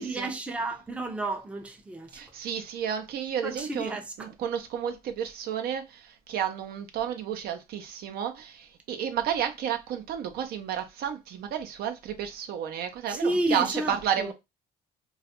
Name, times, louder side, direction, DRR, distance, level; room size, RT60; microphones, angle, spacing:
voice 1, 0.0-2.2 3.4-4.0 13.1-14.3, right 2 dB, 5° right, 0.4 m, -31 dB
voice 2, 2.1-14.3, right 9 dB, 65° right, 0.5 m, -32 dB
2.3 x 2.0 x 2.8 m
cardioid pair, 110°, 17 cm